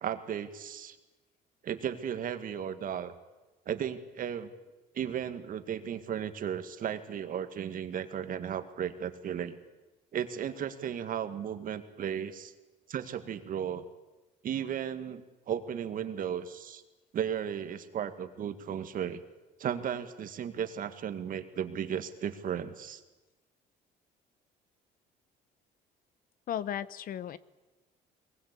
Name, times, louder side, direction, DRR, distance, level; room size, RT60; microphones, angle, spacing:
voice 1, 0.0-1.0 1.6-3.1 3.7-4.5 4.9-9.6 10.1-12.5 12.9-13.8 14.4-16.8 17.1-19.2 19.6-23.0, right 9 dB, 55° right, 10 dB, 1.9 m, -35 dB
voice 2, 26.5-27.4, left 10 dB, 55° left, 18 dB, 0.9 m, -35 dB
22.5 x 20.5 x 8.3 m, 1.1 s
cardioid pair, 110°, 17 cm